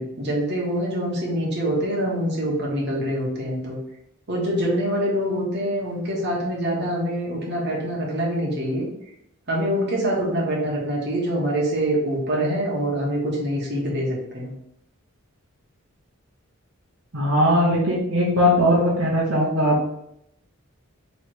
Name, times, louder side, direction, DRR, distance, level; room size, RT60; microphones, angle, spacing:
voice 1, 0.0-3.8 4.3-8.9 9.5-14.5, equal, 50° right, -3 dB, 1.3 m, -25 dB
voice 2, 17.1-19.9, equal, 65° right, -6 dB, 1.0 m, -19 dB
3.3 x 3.2 x 4.5 m, 0.77 s
head